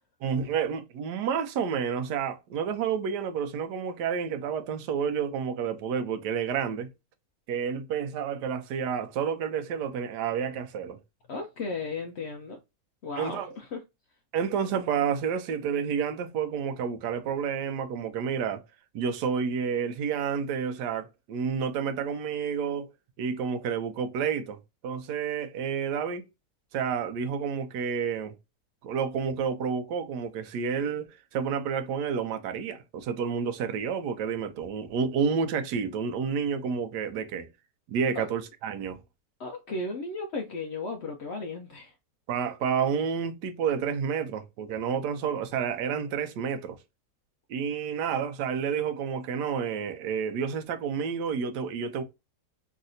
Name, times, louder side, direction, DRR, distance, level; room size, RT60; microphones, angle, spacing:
voice 1, 0.2-6.9 7.5-11.0 13.2-13.5 14.3-18.6 18.9-22.9 23.2-26.2 26.7-28.3 28.8-37.5 37.9-39.0 42.3-46.8 47.5-52.0, right 7 dB, 80° right, 1.2 m, -30 dB
voice 2, 11.3-12.6 13.0-13.8 38.1-38.3 39.4-41.9, left 3 dB, 85° left, 0.5 m, -35 dB
3.2 x 2.7 x 2.5 m
omnidirectional pair, 1.8 m